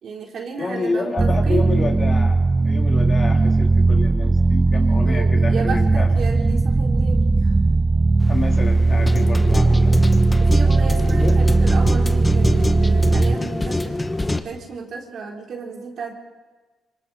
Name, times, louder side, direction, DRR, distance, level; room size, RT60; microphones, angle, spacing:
voice 1, 0.0-2.0 5.0-7.5 10.4-14.0 14.3-16.1, right 5 dB, 60° right, 0 dB, 4.2 m, -33 dB
voice 2, 0.6-2.4 2.6-6.1 8.3-9.9 11.1-11.4, left 3 dB, 35° left, 1 dB, 3.8 m, -28 dB
sound 1, 1.2-13.4, right 3 dB, 20° right, 0.6 m, -17 dB
sound 2, 8.2-14.4, left 2 dB, 15° left, 1.3 m, -26 dB
27.0 x 24.5 x 4.4 m, 1.3 s
cardioid pair, 90°, 0 cm